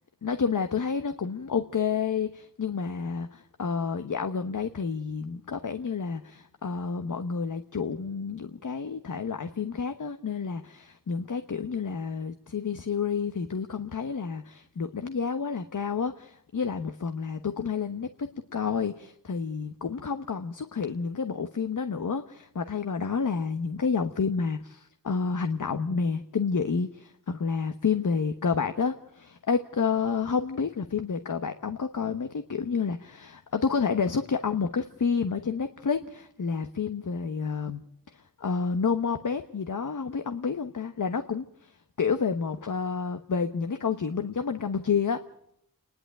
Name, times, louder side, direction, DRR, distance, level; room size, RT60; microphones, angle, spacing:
voice 1, 0.2-37.8 38.1-45.2, left 5 dB, 60° left, 8 dB, 1.1 m, -29 dB
28.0 x 11.0 x 9.0 m, 0.74 s
cardioid pair, 55°, 34 cm